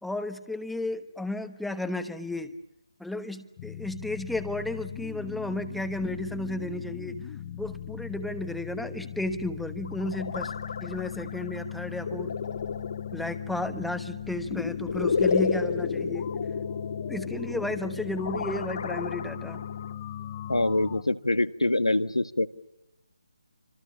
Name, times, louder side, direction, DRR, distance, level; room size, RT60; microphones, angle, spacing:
voice 1, 0.0-2.5 3.0-7.2 7.6-10.5 10.8-12.3 13.1-16.3 17.1-19.6, left 1 dB, ahead, 8 dB, 1.2 m, -33 dB
sound 1, 3.6-21.0, left 10 dB, 25° left, 1.1 m, -39 dB
sound 2, 9.8-19.9, left 5 dB, 45° left, 2.0 m, -32 dB
voice 2, 20.5-22.5, left 2 dB, 85° left, 11 dB, 1.4 m, -25 dB
29.5 x 25.5 x 7.2 m, 0.93 s
figure-of-eight pair, 150°, 3 cm